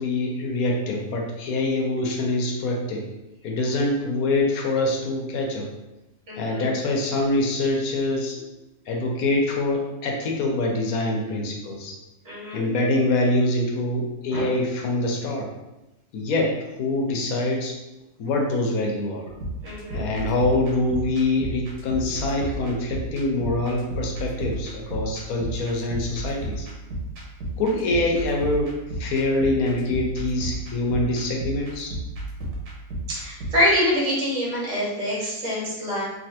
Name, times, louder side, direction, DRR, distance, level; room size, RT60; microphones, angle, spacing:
voice 1, 0.0-3.1 3.4-5.7 6.4-8.4 8.9-11.9 12.5-15.5 16.1-17.8 18.2-19.3 19.9-26.7 27.6-31.9, left 2 dB, 70° left, 0 dB, 1.1 m, -25 dB
voice 2, 6.3-6.7 12.2-12.7 14.3-14.5 19.6-20.0 33.1-36.0, left 1 dB, 55° right, -6 dB, 1.7 m, -25 dB
sound 1, 19.3-33.7, right 1 dB, 75° right, 1.3 m, -34 dB
3.2 x 2.6 x 2.8 m, 0.97 s
omnidirectional pair, 1.6 m